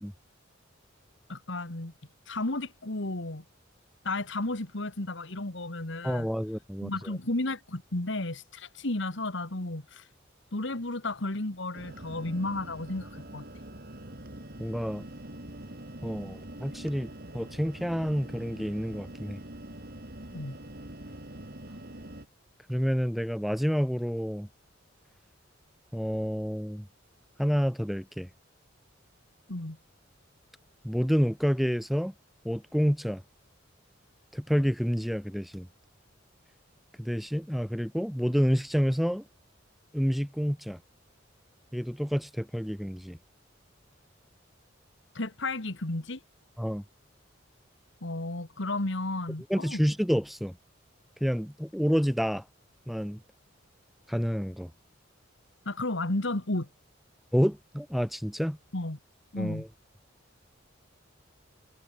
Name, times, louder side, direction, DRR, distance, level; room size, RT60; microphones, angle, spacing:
voice 1, 1.3-1.9 2.3-3.4 4.0-6.3 6.8-10.0 10.5-13.5 20.3-20.6 29.5-29.8 45.1-46.2 48.0-49.8 55.7-56.7 58.7-59.0 59.3-59.6, left 2 dB, 65° left, 2.2 m, -33 dB
voice 2, 6.0-7.1 14.6-15.1 16.0-19.4 22.7-24.5 25.9-26.9 27.4-28.3 30.8-32.1 32.4-33.2 34.3-35.7 37.0-39.2 39.9-40.8 41.7-43.2 46.6-46.8 49.5-50.6 51.2-52.4 52.9-53.2 54.1-54.7 57.3-58.6 59.4-59.7, equal, ahead, 1.9 m, -29 dB
sound 1, 11.7-22.3, right 1 dB, 50° right, 5.1 m, -44 dB
head